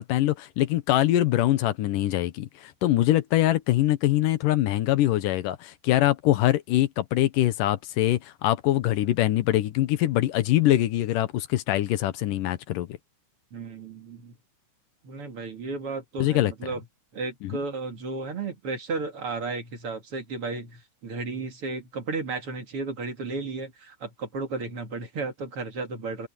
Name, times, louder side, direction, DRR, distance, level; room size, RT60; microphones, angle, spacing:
voice 1, 0.0-13.0 16.2-16.5 17.4-17.6, left 14 dB, 85° left, 2.6 m, -23 dB
voice 2, 13.5-14.3 15.0-16.8 17.1-26.3, right 3 dB, 45° right, 2.9 m, -34 dB
omnidirectional pair, 3.8 m